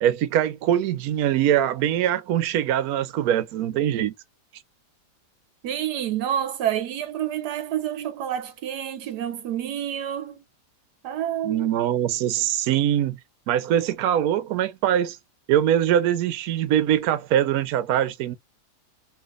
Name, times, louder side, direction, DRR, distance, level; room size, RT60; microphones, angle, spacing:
voice 1, 0.0-4.1 11.4-13.2 13.5-15.2 15.5-18.4, right 11 dB, 70° right, 1.1 m, -22 dB
voice 2, 5.6-10.4 11.0-11.7, right 10 dB, 90° right, 1.3 m, -28 dB
3.2 x 2.8 x 2.4 m
omnidirectional pair, 1.7 m